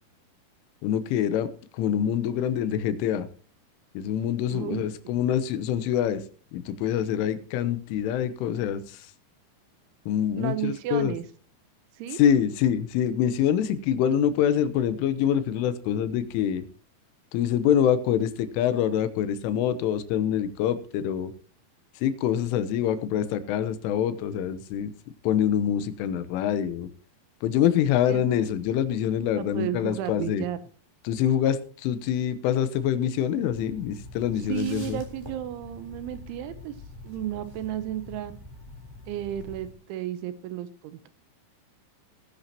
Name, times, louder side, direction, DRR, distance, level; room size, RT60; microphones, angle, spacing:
voice 1, 0.8-1.5 1.7-3.3 3.9-6.2 6.5-9.1 10.1-11.1 12.1-16.6 17.3-21.3 22.0-24.9 25.2-26.9 27.4-30.4 31.0-35.0, left 9 dB, 85° left, 12 dB, 3.5 m, -25 dB
voice 2, 4.5-4.8 5.2-5.3 10.4-11.2 12.0-12.2 28.1-28.2 29.4-30.6 34.5-36.7 37.0-38.3 39.1-41.1, right 12 dB, 80° right, 12 dB, 3.2 m, -33 dB
sound 1, 33.5-39.7, left 1 dB, 5° right, 2.7 m, -45 dB
19.0 x 10.5 x 2.9 m, 0.40 s
omnidirectional pair, 5.6 m